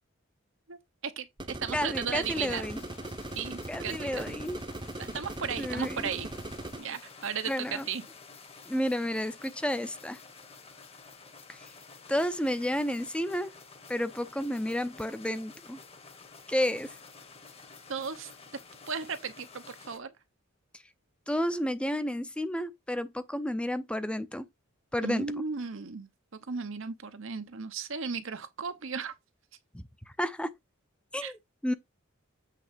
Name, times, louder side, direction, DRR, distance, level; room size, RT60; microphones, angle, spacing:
voice 1, 1.0-2.6 3.3-4.2 5.0-6.3 6.8-8.0 17.9-18.3 18.9-20.1 25.0-26.1 26.5-29.1 31.2-31.3, right 6 dB, 65° right, 0.9 m, -35 dB
sound 1, 1.4-6.8, right 2 dB, 20° right, 0.9 m, -40 dB
voice 2, 1.7-2.8 3.7-4.6 5.6-6.1 7.5-7.9 8.7-10.2 11.5-11.7 12.1-13.5 13.9-15.8 16.5-16.9 21.3-24.4 24.9-25.4 29.7-29.8 30.2-30.5 31.1-31.7, equal, 5° left, 0.7 m, -31 dB
sound 2, 2.2-20.0, left 4 dB, 30° left, 1.3 m, -51 dB
8.4 x 3.7 x 5.1 m
head